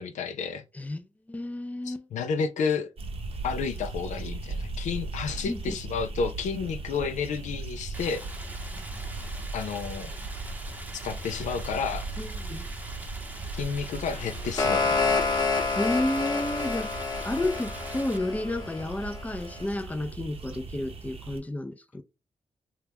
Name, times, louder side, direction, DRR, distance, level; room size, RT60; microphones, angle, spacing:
voice 1, 0.0-0.6 1.9-2.9 3.4-8.2 9.5-10.1 11.0-12.1 13.6-15.3, left 5 dB, 80° left, 0.4 m, -31 dB
voice 2, 0.7-2.1 5.5-5.7 12.2-12.7 15.8-16.9 17.2-22.0, left 1 dB, 10° left, 0.5 m, -31 dB
sound 1, 3.0-21.4, right 3 dB, 50° right, 0.7 m, -38 dB
Stream, 7.9-18.2, right 1 dB, 15° right, 0.8 m, -44 dB
sound 2, 14.2-19.2, left 4 dB, 35° left, 1.0 m, -28 dB
2.9 x 2.3 x 3.4 m
cardioid pair, 50°, 12 cm